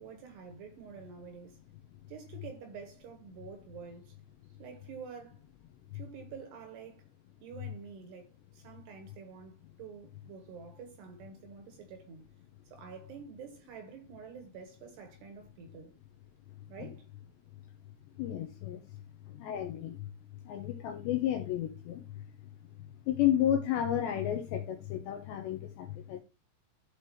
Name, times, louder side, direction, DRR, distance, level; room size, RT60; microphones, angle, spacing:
voice 1, 0.0-1.6 2.1-4.2 4.6-5.4 5.9-7.0 7.4-12.3 12.7-15.9 16.7-17.1, right 6 dB, 65° right, 3.0 m, -48 dB
voice 2, 18.2-18.8 19.3-20.1 20.5-22.2 23.1-26.2, left 11 dB, 75° left, 2.7 m, -32 dB
13.5 x 5.0 x 3.0 m
omnidirectional pair, 5.9 m